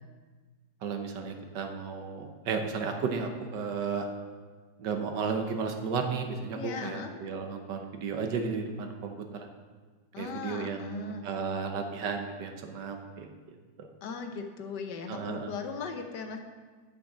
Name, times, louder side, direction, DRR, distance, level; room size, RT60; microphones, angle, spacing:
voice 1, 0.8-4.1 4.8-9.5 10.2-13.3 13.8-13.9 15.1-15.5, right 5 dB, 70° right, 4 dB, 1.5 m, -34 dB
voice 2, 6.5-7.1 10.1-11.3 14.0-16.4, left 5 dB, 70° left, 5 dB, 1.4 m, -38 dB
8.2 x 6.4 x 7.2 m, 1.4 s
omnidirectional pair, 2.0 m